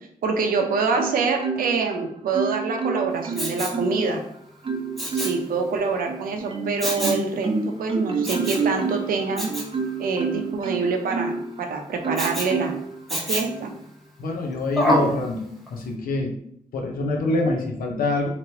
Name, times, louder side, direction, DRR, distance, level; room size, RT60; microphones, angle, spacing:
voice 1, 0.2-4.2 5.1-7.5 7.8-9.5 10.0-12.8 13.1-13.7, right 4 dB, 90° right, 3 dB, 0.5 m, -25 dB
Marimba xylophone, 0.9-1.9 2.3-4.2 4.6-5.5 6.1-11.5 12.0-12.9 13.4-13.7, right 4 dB, 35° right, 0.5 m, -28 dB
Respiratory sounds, 3.3-3.8 5.0-5.4 6.8-7.3 8.2-8.7 9.4-9.7 12.2-12.5 13.1-13.6 14.8-15.2 15.7-15.8, equal, ahead, 0.9 m, -26 dB
voice 2, 14.2-15.4 15.7-16.4 16.7-18.3, left 2 dB, 85° left, 2 dB, 0.6 m, -25 dB
3.0 x 2.9 x 2.8 m, 0.69 s
cardioid pair, 60°, 14 cm